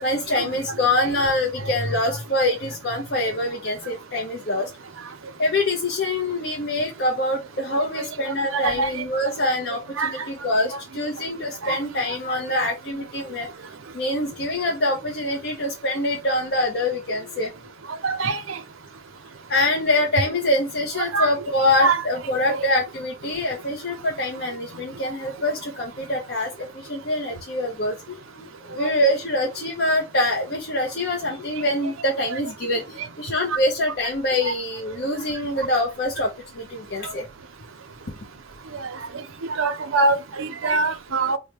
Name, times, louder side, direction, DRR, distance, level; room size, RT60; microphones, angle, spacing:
voice 1, 0.0-4.7 5.4-13.5 13.9-17.5 19.5-37.3 40.7-40.8, left 1 dB, 50° left, 0.7 m, -25 dB
voice 2, 8.5-8.9 10.0-10.1 11.6-11.8 12.6-12.7 18.0-18.4 21.1-21.3 21.8-22.0 22.5-22.6 28.8-28.9 32.3-32.4 34.5-34.6 38.8-38.9 39.6-41.4, right 3 dB, 85° right, 0.6 m, -23 dB
4.5 x 2.1 x 3.2 m
head